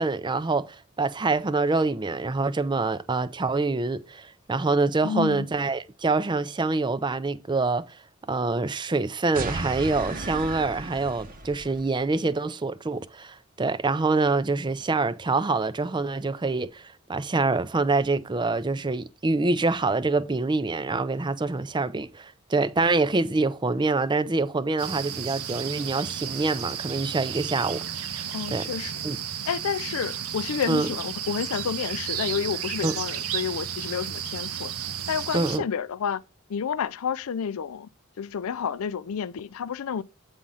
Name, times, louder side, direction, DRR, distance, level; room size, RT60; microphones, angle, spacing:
voice 1, 0.0-8.0 8.3-28.7 29.0-29.2 30.7-30.9 32.8-32.9 35.3-35.6, right 3 dB, 20° right, 0.4 m, -26 dB
voice 2, 5.0-5.5 28.3-28.9 29.5-34.7 35.1-36.2 36.5-37.9 38.2-40.0, left 7 dB, 70° left, 0.4 m, -30 dB
sound 1, 9.3-11.9, right 3 dB, 40° right, 0.8 m, -35 dB
sound 2, 24.8-35.6, right 9 dB, 85° right, 0.8 m, -33 dB
8.6 x 3.6 x 5.5 m
head